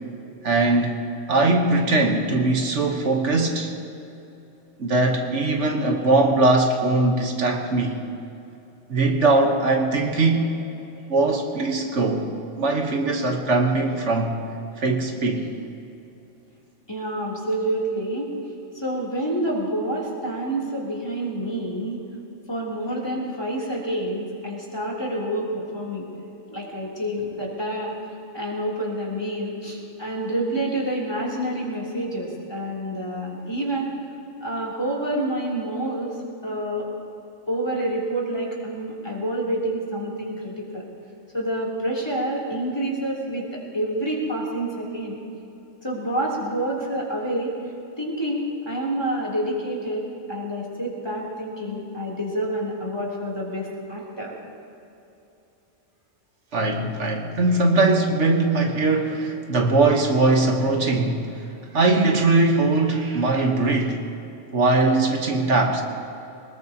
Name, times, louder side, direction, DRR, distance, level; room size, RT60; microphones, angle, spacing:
voice 1, 0.4-1.0 1.3-3.7 4.8-8.0 8.9-10.5 11.1-12.3 12.6-14.4 14.8-15.5 56.5-61.2 61.7-64.0 64.5-65.8, right 2 dB, 70° right, 3 dB, 1.5 m, -20 dB
voice 2, 16.9-18.3 18.7-22.0 22.5-26.1 26.5-28.0 28.3-33.9 34.4-36.2 36.4-36.9 37.5-40.8 41.3-45.2 45.8-47.5 48.0-54.3, right 1 dB, 20° left, -4 dB, 3.3 m, -28 dB
23.5 x 20.5 x 2.9 m, 2.8 s
omnidirectional pair, 1.3 m